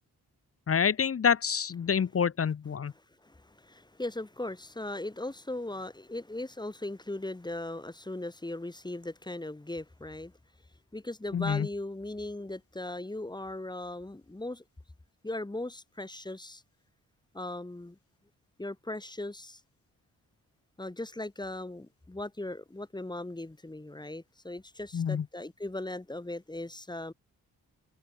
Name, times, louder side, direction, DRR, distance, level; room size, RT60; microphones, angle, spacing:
voice 1, 0.7-2.9 11.3-11.7 24.9-25.2, left 7 dB, 35° left, 0.7 m, -27 dB
voice 2, 2.9-10.3 10.9-14.6 15.2-16.6 17.3-18.0 18.6-19.6 20.8-27.1, left 2 dB, 10° left, 1.0 m, -38 dB
open air
supercardioid pair, 45°, 39 cm